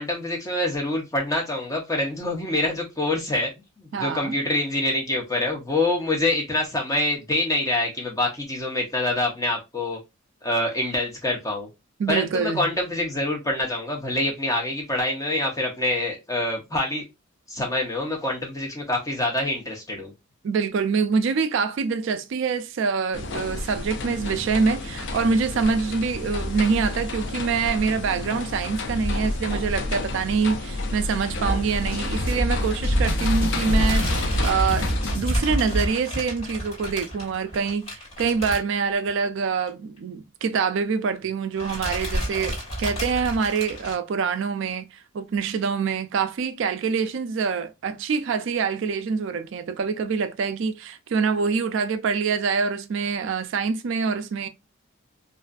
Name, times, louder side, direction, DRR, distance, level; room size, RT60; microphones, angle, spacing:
voice 1, 0.0-3.5 3.8-10.0 10.4-11.7 12.1-17.0 17.5-20.1, left 1 dB, 15° left, 0.7 m, -26 dB
voice 2, 3.9-4.3 12.0-12.7 20.4-54.5, right 5 dB, 60° right, 0.3 m, -25 dB
sound 1, 23.1-35.2, left 2 dB, 55° left, 0.4 m, -28 dB
sound 2, 31.5-35.9, right 1 dB, 75° left, 1.3 m, -27 dB
sound 3, 33.6-39.2 39.5-39.7 40.0-40.1 41.0-41.3 41.6-43.9, equal, 30° left, 1.7 m, -32 dB
2.5 x 2.4 x 2.3 m
head